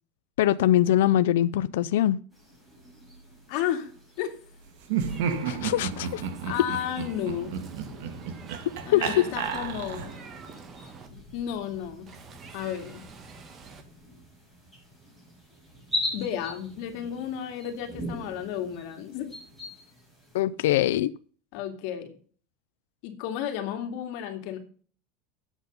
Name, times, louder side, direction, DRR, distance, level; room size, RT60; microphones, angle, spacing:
voice 1, 0.4-2.2 5.5-6.3 8.9-9.3 20.3-21.1, left 13 dB, 90° left, 0.4 m, -23 dB
sound 1, 2.3-20.4, left 1 dB, 5° right, 6.9 m, -42 dB
voice 2, 3.5-3.9 4.2-4.3 6.4-7.5 8.9-10.1 11.1-12.1 12.5-13.0 16.1-19.3 21.5-22.1 23.0-24.6, left 10 dB, 60° left, 2.3 m, -32 dB
Laughter, 4.8-10.3, right 7 dB, 75° right, 1.9 m, -32 dB
Meow, 5.1-11.1 12.1-13.8, right 4 dB, 25° right, 1.7 m, -48 dB
10.0 x 8.1 x 5.4 m
supercardioid pair, 150°, 0 cm